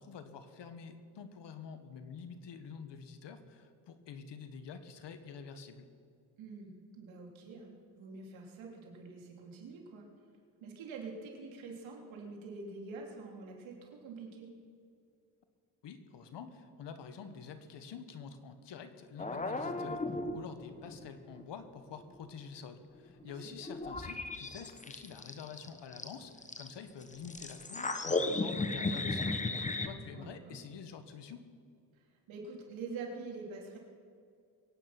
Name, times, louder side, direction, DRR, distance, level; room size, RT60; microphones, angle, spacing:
voice 1, 0.0-5.9 15.8-29.4 29.8-31.4, left 6 dB, 60° left, 9 dB, 1.6 m, -47 dB
voice 2, 6.4-10.1 10.6-14.5 23.2-23.3 29.9-30.6 31.9-33.8, right 4 dB, 75° right, 0 dB, 3.4 m, -46 dB
sound 1, 19.2-21.4 21.7-22.3 23.2-23.3 23.7-26.7 27.0-29.9, left 2 dB, 15° left, 1.0 m, -36 dB
23.0 x 9.3 x 6.0 m, 2.4 s
cardioid pair, 90°, 47 cm